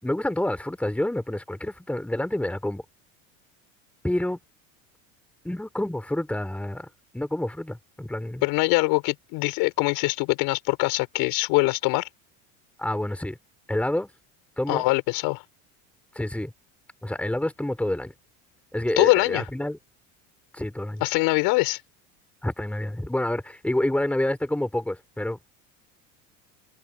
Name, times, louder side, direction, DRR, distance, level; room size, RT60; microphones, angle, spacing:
voice 1, 0.0-2.8 4.0-4.4 5.4-6.9 7.1-8.4 12.8-13.4 13.7-14.1 14.6-14.9 16.1-16.5 17.0-18.1 18.7-19.8 20.5-21.0 22.4-25.4, left 1 dB, 5° left, 4.2 m, -28 dB
voice 2, 8.4-12.1 14.7-15.4 19.0-19.4 21.0-21.8, left 25 dB, 65° left, 5.8 m, -23 dB
supercardioid pair, 110°, 38 cm